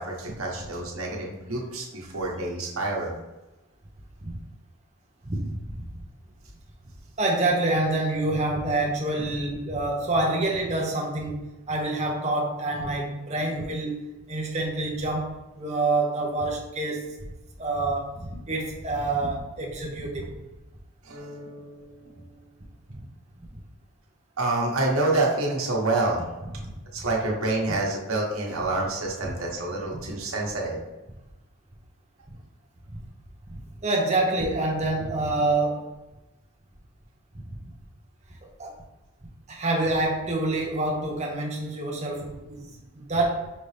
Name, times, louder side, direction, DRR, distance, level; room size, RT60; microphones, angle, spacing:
voice 1, 0.0-3.2 21.0-22.3 24.4-26.2 26.9-30.8, right 2 dB, 85° right, -2 dB, 1.1 m, -28 dB
voice 2, 7.2-17.1 17.6-20.4 26.6-26.7 33.5-35.9 38.4-38.7 39.5-43.5, right 2 dB, 30° right, 0 dB, 0.7 m, -27 dB
5.2 x 2.8 x 3.3 m, 1.0 s
head